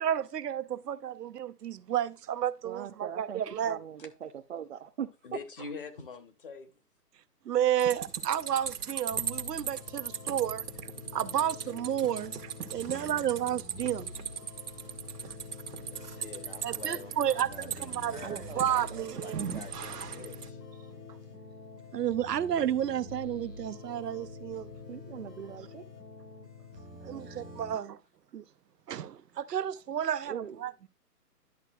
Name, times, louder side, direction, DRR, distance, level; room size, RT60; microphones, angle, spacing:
voice 1, 0.0-3.8 7.5-10.6 11.1-14.1 15.2-15.3 16.6-17.5 17.8-19.4 21.9-24.7 27.1-28.0 28.3-28.4 28.9-30.9, right 10 dB, 85° right, 0.7 m, -31 dB
voice 2, 2.6-5.4 12.1-12.2 18.2-19.4 24.9-25.8 27.0-27.3 27.6-27.7 30.3-30.6, right 8 dB, 50° right, 0.5 m, -42 dB
voice 3, 5.2-6.7 15.8-18.9 19.2-20.6 24.5-24.6 27.7-27.8, left 5 dB, 35° left, 0.9 m, -46 dB
sound 1, 7.8-20.5, right 8 dB, 70° right, 1.1 m, -39 dB
sound 2, 9.1-27.7, left 3 dB, 85° left, 5.4 m, -46 dB
10.5 x 6.9 x 2.3 m
hypercardioid pair, 165°, 47 cm